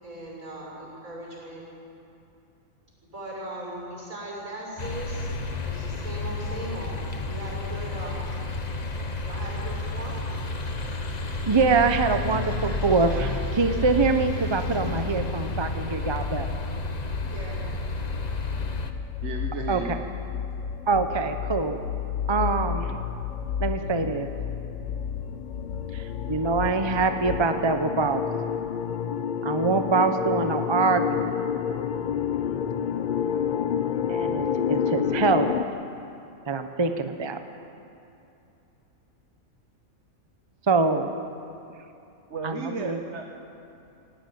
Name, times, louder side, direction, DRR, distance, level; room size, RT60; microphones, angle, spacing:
voice 1, 0.0-1.6 3.0-5.3 5.6-7.0 7.3-8.2 9.2-10.2 17.3-17.6, right 1 dB, 75° right, -3 dB, 6.5 m, -38 dB
sound 1, 4.8-18.9, left 2 dB, 35° left, 1.0 m, -31 dB
voice 2, 11.5-16.5 19.7-20.0 20.9-21.8 22.3-22.9 23.6-24.3 25.9-28.2 29.4-31.2 34.1-35.5 36.5-37.4 40.7-41.1 42.4-43.0, right 4 dB, 25° right, 7 dB, 0.7 m, -24 dB
sound 2, 15.3-27.5, left 7 dB, 70° left, 1.3 m, -33 dB
voice 3, 19.2-20.0 42.3-43.2, right 3 dB, 55° right, 2 dB, 1.3 m, -34 dB
sound 3, 24.9-35.6, left 8 dB, 50° left, 0.6 m, -28 dB
17.5 x 16.0 x 9.2 m, 2.8 s
omnidirectional pair, 1.5 m